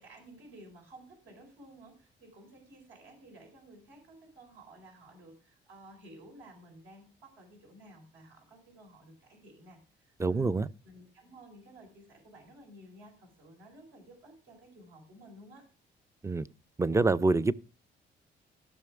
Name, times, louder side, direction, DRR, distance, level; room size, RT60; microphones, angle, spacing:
voice 1, 0.0-10.5 10.8-15.6, right 1 dB, 85° right, 4.5 m, -54 dB
voice 2, 10.2-10.7 16.2-16.5 16.8-17.6, right 3 dB, 15° right, 0.4 m, -26 dB
15.0 x 6.1 x 3.5 m
cardioid pair, 90°, 20 cm